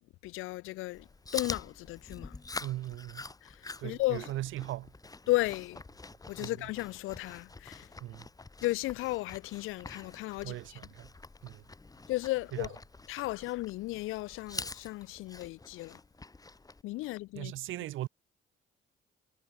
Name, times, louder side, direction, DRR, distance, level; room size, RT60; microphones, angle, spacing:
voice 1, 0.2-1.1 1.3-2.3 3.4-4.3 5.3-5.8 6.3-7.9 8.6-10.8 12.1-12.8 13.1-16.0 16.8-17.5, left 19 dB, 85° left, 0.5 m, -34 dB
Chewing mastication, 0.9-16.8, left 3 dB, 15° left, 0.9 m, -46 dB
voice 2, 2.6-3.3 3.8-4.9 6.4-6.5 8.0-8.3 10.4-11.1 11.4-11.6 12.5-12.7 17.3-18.1, right 15 dB, 75° right, 0.6 m, -38 dB
supercardioid pair, 70°, 21 cm